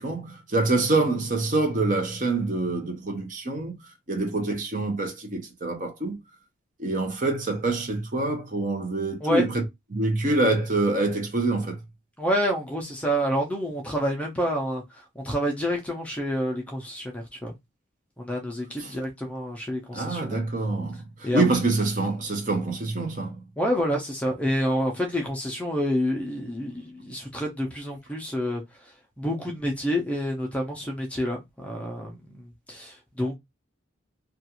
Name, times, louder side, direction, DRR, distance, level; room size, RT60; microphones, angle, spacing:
voice 1, 0.0-3.8 4.1-6.2 6.8-9.6 9.9-11.8 18.8-18.9 19.9-23.4, right 2 dB, 40° right, 0.7 m, -26 dB
voice 2, 12.2-14.8 15.2-17.5 18.2-20.4 21.2-21.6 23.6-28.6 29.2-33.3, equal, 5° left, 0.5 m, -28 dB
2.4 x 2.3 x 2.8 m
head